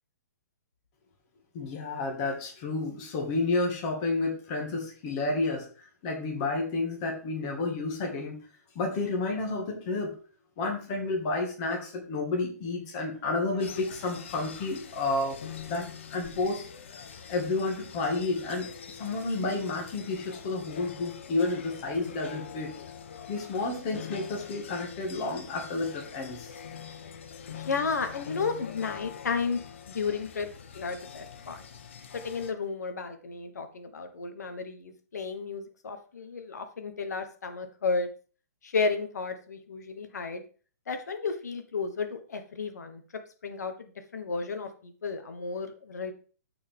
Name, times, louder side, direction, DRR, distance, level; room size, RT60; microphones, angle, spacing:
voice 1, 1.5-8.4 8.8-10.1 10.6-15.4 15.7-16.7 17.0-22.7 23.3-26.5, left 3 dB, 25° left, 0 dB, 1.8 m, -31 dB
sound 1, 13.6-32.5, left 7 dB, 45° left, 0.9 m, -44 dB
voice 2, 27.5-29.6 29.9-30.5 30.7-31.6 32.1-38.1 38.6-40.4 40.9-43.0 43.4-46.1, left 4 dB, 80° left, 7 dB, 1.3 m, -33 dB
14.0 x 4.7 x 3.6 m, 0.38 s
hypercardioid pair, 175°, 9 cm